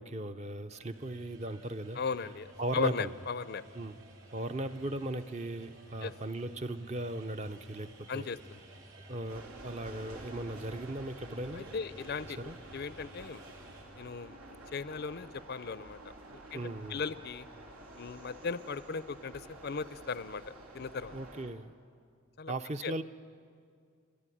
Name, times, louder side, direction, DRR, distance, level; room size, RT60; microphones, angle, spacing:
voice 1, 0.0-2.0 2.6-3.1 3.7-4.0 4.3-8.3 9.1-11.8 12.4-12.6 16.5-17.0 21.1-21.7 22.5-23.0, right 1 dB, 30° right, 10 dB, 0.6 m, -37 dB
sound 1, 0.7-13.9, right 1 dB, 60° right, 3.3 m, -54 dB
voice 2, 1.9-3.6 6.0-6.1 8.1-8.6 11.5-13.4 14.0-17.5 18.0-20.4 20.7-21.2 22.4-22.5 22.8-22.9, left 5 dB, 45° left, 16 dB, 0.5 m, -37 dB
sound 2, 9.3-21.5, right 1 dB, 85° right, 2.6 m, -50 dB
30.0 x 13.0 x 10.0 m, 2.2 s
head